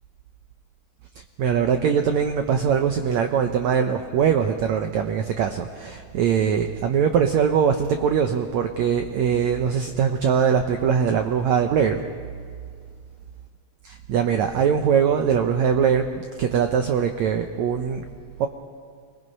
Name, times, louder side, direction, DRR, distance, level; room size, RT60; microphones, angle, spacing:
voice 1, 1.4-12.0 13.8-18.0 18.4-18.5, right 7 dB, 80° right, 6 dB, 1.6 m, -22 dB
25.5 x 20.5 x 5.4 m, 2.1 s
omnidirectional pair, 4.3 m